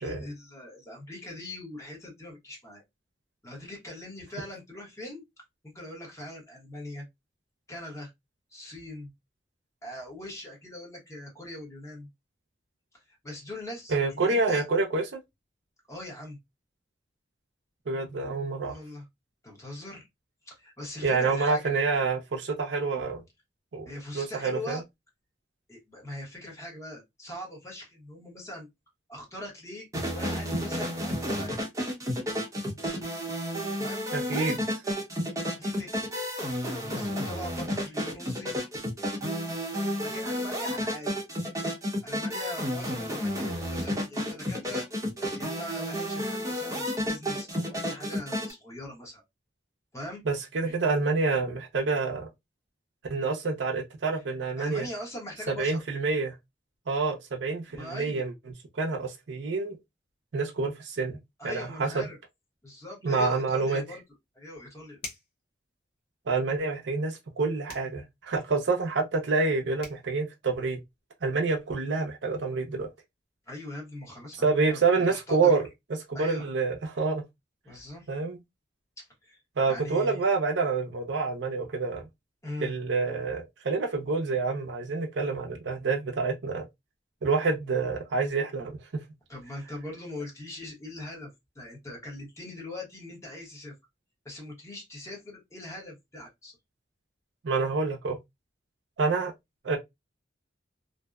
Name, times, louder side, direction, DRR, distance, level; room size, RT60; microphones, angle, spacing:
voice 1, 0.0-2.8 3.4-5.2 5.7-7.0 7.7-8.1 8.5-9.1 9.8-12.1 12.9-14.7 15.9-16.4 18.6-19.1 19.4-20.0 20.4-21.8 23.9-24.8 25.7-28.7 29.1-29.9 30.1-31.6 33.8-34.0 35.6-36.0 36.8-38.6 39.8-41.1 42.0-44.9 45.4-49.2 49.9-50.2 50.6-50.7 54.1-54.2 54.6-55.8 57.7-58.3 61.4-62.2 62.6-64.0 64.3-65.0 73.5-74.8 75.1-75.6 76.1-76.5 77.6-78.1 79.0-79.4 79.7-80.2 82.4-82.7 89.3-93.8 94.2-96.5, left 1 dB, 15° left, 0.9 m, -41 dB
voice 2, 13.9-15.2 17.9-18.7 21.0-23.2 23.7-23.9 24.1-24.8 34.1-34.6 50.3-52.3 53.1-54.9 55.5-56.3 56.9-58.3 58.7-59.8 60.3-61.2 61.4-62.1 63.0-63.8 66.3-70.8 71.2-72.9 74.4-75.6 76.1-77.2 78.1-78.4 79.6-82.1 82.6-86.6 87.2-89.0 97.4-98.2 99.0-99.3 99.6-99.8, right 4 dB, 70° right, 0.6 m, -27 dB
sound 1, 29.9-48.5, equal, 20° right, 0.8 m, -31 dB
sound 2, 65.0-65.4 67.7-68.0 69.5-69.6 69.8-70.0, left 2 dB, 60° left, 0.9 m, -42 dB
2.6 x 2.1 x 2.3 m
head